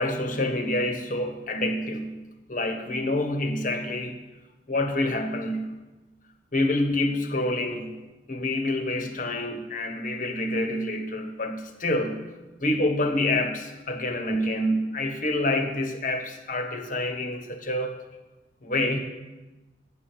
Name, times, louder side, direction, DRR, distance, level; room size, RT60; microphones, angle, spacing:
voice 1, 0.0-4.2 4.7-5.8 6.5-8.0 8.3-12.3 12.6-18.0 18.6-19.0, left 1 dB, 45° left, 5 dB, 1.4 m, -27 dB
11.5 x 9.1 x 6.2 m, 1.1 s
head